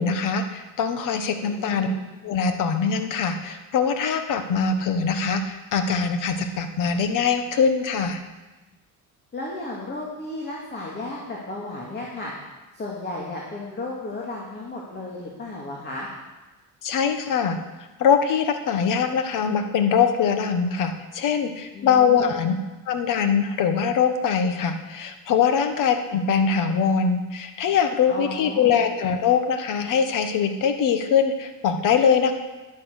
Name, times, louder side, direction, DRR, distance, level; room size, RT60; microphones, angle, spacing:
voice 1, 0.0-1.9 2.2-8.2 16.8-17.6 18.0-22.6 22.9-32.3, left 6 dB, 60° left, 7 dB, 1.3 m, -22 dB
voice 2, 1.3-2.1 9.3-12.3 12.7-16.1 21.7-22.4 28.1-28.9, left 2 dB, 30° left, -3 dB, 2.3 m, -34 dB
11.0 x 10.0 x 6.5 m, 1.1 s
cardioid pair, 150°, 35 cm